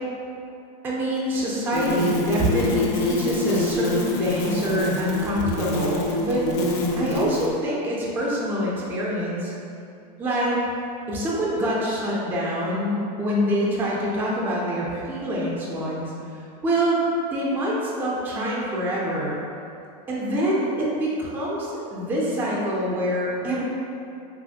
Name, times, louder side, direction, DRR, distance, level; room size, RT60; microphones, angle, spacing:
voice 1, 0.8-6.4 7.0-9.5 10.2-10.6 11.1-16.0 16.6-17.0 17.3-19.4 20.1-23.6, equal, 10° right, -6 dB, 0.3 m, -25 dB
sound 1, 1.7-7.5, left 1 dB, 70° left, 0.5 m, -26 dB
3.1 x 2.5 x 2.7 m, 2.6 s
supercardioid pair, 150°, 21 cm